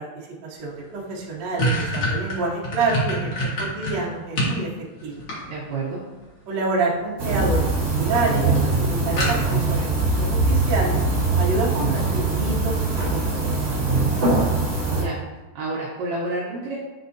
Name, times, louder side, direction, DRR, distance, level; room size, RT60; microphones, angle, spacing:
voice 1, 0.0-3.3 3.6-4.7 5.0-5.2 6.5-7.7 7.9-9.9 10.2-11.0 11.4-14.6, right 3 dB, 60° right, -5 dB, 1.9 m, -28 dB
sound 1, 0.7-0.8 1.1-4.6 5.0-5.9 7.0-7.4 7.7-7.8 8.1-8.2 8.5-8.6 9.2-9.7, equal, 55° left, 1.4 m, -26 dB
voice 2, 5.5-6.1 14.9-15.2 15.6-16.8, right 2 dB, 75° right, -5 dB, 2.1 m, -29 dB
sound 2, 7.2-15.0, right 3 dB, 40° right, 1.9 m, -22 dB
sound 3, 7.8-11.0 11.3-11.7, left 2 dB, 80° left, 3.0 m, -38 dB
9.1 x 4.1 x 2.7 m, 1.2 s
omnidirectional pair, 4.7 m